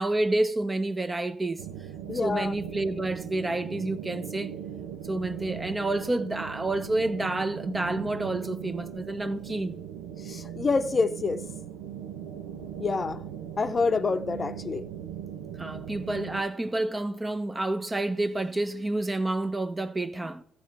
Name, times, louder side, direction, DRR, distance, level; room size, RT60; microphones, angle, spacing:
voice 1, 0.0-1.6 2.1-4.5 5.1-9.8 15.6-20.4, right 2 dB, 20° right, 0.8 m, -29 dB
sound 1, 1.6-16.4, right 9 dB, 90° right, 0.7 m, -39 dB
voice 2, 2.1-2.5 10.3-11.4 12.8-13.2 13.6-14.8, left 4 dB, 35° left, 0.7 m, -27 dB
14.0 x 7.7 x 3.4 m
supercardioid pair, 65°, 0 cm